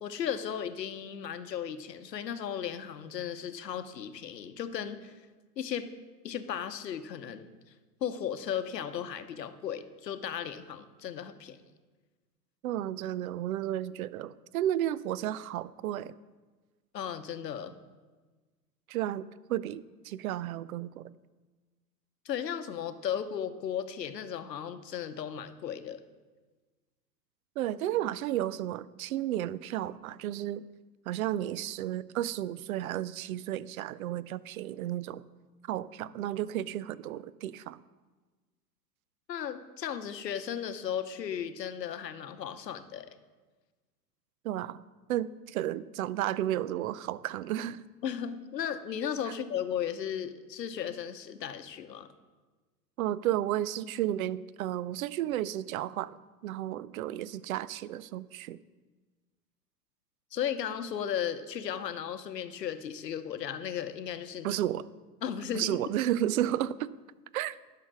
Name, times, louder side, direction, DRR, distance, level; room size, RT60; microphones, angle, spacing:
voice 1, 0.0-5.1 5.6-5.9 6.2-7.5 8.0-11.6 16.9-17.8 22.2-26.0 39.3-43.1 48.0-52.1 60.3-64.6 65.2-65.8, left 9 dB, 80° left, 10 dB, 0.9 m, -35 dB
voice 2, 12.6-16.1 18.9-21.0 27.6-30.6 31.1-35.2 35.7-37.8 44.4-44.8 45.1-47.8 49.3-49.4 53.0-56.2 56.4-58.6 64.4-64.9 65.5-66.9 67.3-67.6, right 12 dB, 60° right, 19 dB, 0.5 m, -32 dB
10.5 x 5.8 x 6.1 m, 1.3 s
figure-of-eight pair, 100°, 49 cm